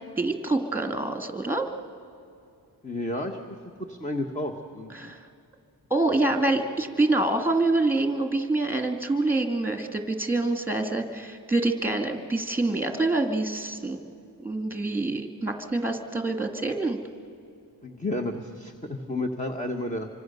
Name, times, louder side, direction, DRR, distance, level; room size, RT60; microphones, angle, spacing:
voice 1, 0.2-1.7 4.9-5.2 5.9-14.0 14.4-17.0, right 2 dB, 5° right, 5 dB, 2.0 m, -26 dB
voice 2, 2.8-3.6 3.9-5.1 17.8-20.1, left 1 dB, 20° left, 3 dB, 1.3 m, -32 dB
26.5 x 24.5 x 6.7 m, 2.5 s
wide cardioid pair, 115°, 39 cm